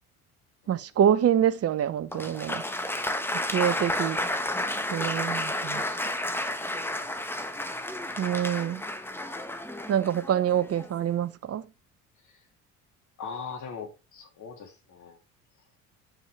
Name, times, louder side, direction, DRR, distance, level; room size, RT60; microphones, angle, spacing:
voice 1, 0.7-2.6 3.5-4.2 4.9-5.8 8.2-8.8 9.9-11.6, right 9 dB, 35° right, 0.9 m, -26 dB
Applause, 2.1-11.0, left 1 dB, 5° left, 1.3 m, -31 dB
voice 2, 13.2-15.2, left 6 dB, 45° left, 3.5 m, -40 dB
9.9 x 7.2 x 3.5 m
hypercardioid pair, 60°, 41 cm